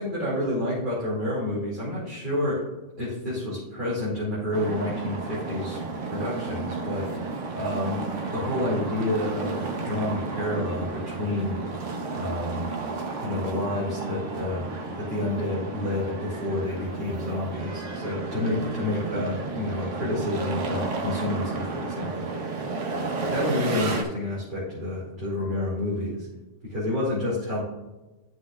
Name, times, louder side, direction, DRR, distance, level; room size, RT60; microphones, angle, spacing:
voice 1, 0.0-2.7 3.0-5.8 6.1-8.0 8.3-11.6 12.1-12.7 13.2-14.7 15.0-22.3 23.1-26.3 26.6-27.6, left 1 dB, 45° right, -9 dB, 2.7 m, -29 dB
sound 1, 4.5-24.0, right 3 dB, 90° right, 1.4 m, -32 dB
11.5 x 6.1 x 2.4 m, 1.1 s
omnidirectional pair, 1.2 m